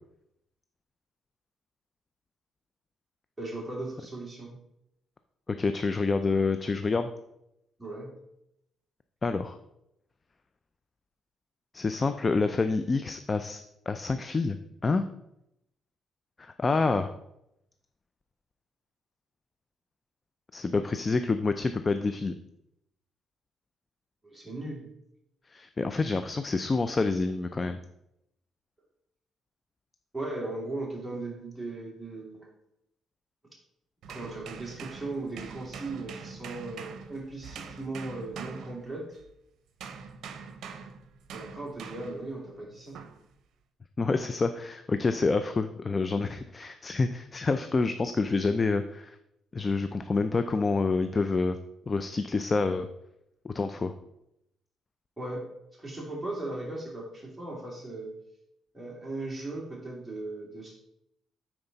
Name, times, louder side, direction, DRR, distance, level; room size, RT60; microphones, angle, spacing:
voice 1, 3.4-4.6 7.8-8.1 24.2-24.9 30.1-32.5 34.1-39.2 41.3-43.0 55.2-58.1 58.7-60.8, right 2 dB, 10° right, -3 dB, 2.6 m, -37 dB
voice 2, 5.6-7.1 9.2-9.6 11.7-15.0 16.4-17.1 20.5-22.3 25.5-27.8 44.0-49.2 49.5-51.6 51.9-52.9 53.4-53.9, left 3 dB, 30° left, 9 dB, 0.4 m, -27 dB
sound 1, 34.0-39.3 39.8-42.3 43.0-43.2, right 6 dB, 70° right, 0.7 m, -43 dB
9.6 x 4.5 x 4.0 m, 0.82 s
cardioid pair, 90°, 0 cm